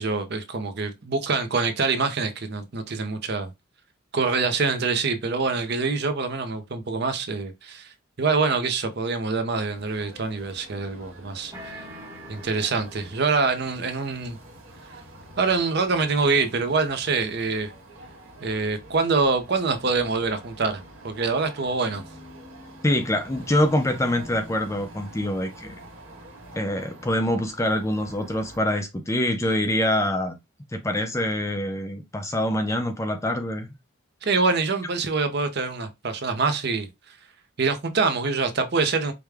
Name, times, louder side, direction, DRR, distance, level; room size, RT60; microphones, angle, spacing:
voice 1, 0.0-3.5 4.1-7.9 8.2-11.5 12.3-14.4 15.4-17.7 18.4-22.0 34.2-36.9 37.6-39.1, right 4 dB, 50° right, 0.6 m, -25 dB
sound 1, 9.6-28.6, right 1 dB, 75° right, 1.4 m, -46 dB
sound 2, 11.5-13.5, equal, 15° right, 0.9 m, -43 dB
voice 2, 22.8-25.7 26.6-30.4 30.7-33.7, left 1 dB, 15° left, 0.4 m, -25 dB
4.8 x 2.2 x 3.4 m
head